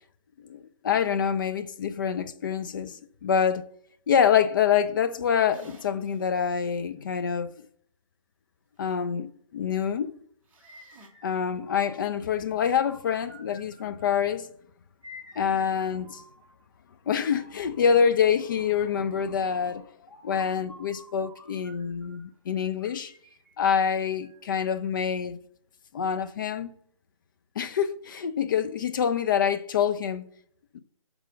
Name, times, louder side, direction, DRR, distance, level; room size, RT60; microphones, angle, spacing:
voice 1, 0.4-3.6 4.1-7.7 8.8-10.2 11.2-14.5 15.4-16.2 17.1-19.8 20.2-23.1 23.6-25.4 25.9-26.8 27.6-30.3 30.7-30.8, left 7 dB, 40° left, 0.6 m, -26 dB
sound 1, 5.5-6.2 6.7-6.8 10.5-11.1, right 2 dB, 10° right, 1.1 m, -52 dB
sound 2, 10.6-12.2 12.8-14.4 15.0-16.6 17.3-18.5 19.6-22.4 22.8-24.6, left 1 dB, 15° left, 2.4 m, -52 dB
6.6 x 4.7 x 5.0 m
figure-of-eight pair, 150°, 17 cm